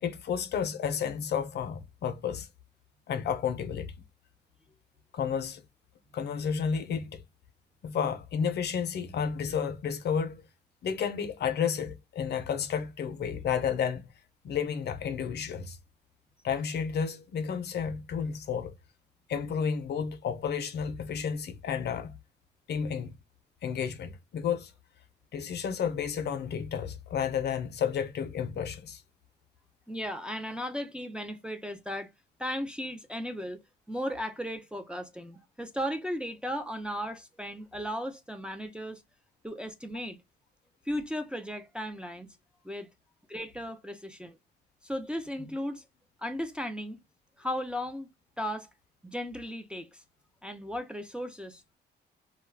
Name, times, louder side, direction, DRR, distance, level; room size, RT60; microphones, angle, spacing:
voice 1, 0.0-2.5 3.1-3.9 5.1-5.6 6.1-7.2 7.8-10.5 10.8-14.1 14.4-15.8 16.4-18.7 19.3-22.1 22.7-23.1 23.6-24.7 25.3-29.0, left 7 dB, 55° left, 0.5 m, -31 dB
voice 2, 29.9-32.1 32.4-33.6 33.9-39.0 39.4-40.2 40.9-42.4 42.6-42.9 43.3-44.4 44.8-45.8 46.2-47.0 47.4-48.1 48.4-48.7 49.0-50.0 50.4-51.8, equal, 5° right, 0.4 m, -36 dB
2.2 x 2.2 x 3.2 m
cardioid pair, 90°, 20 cm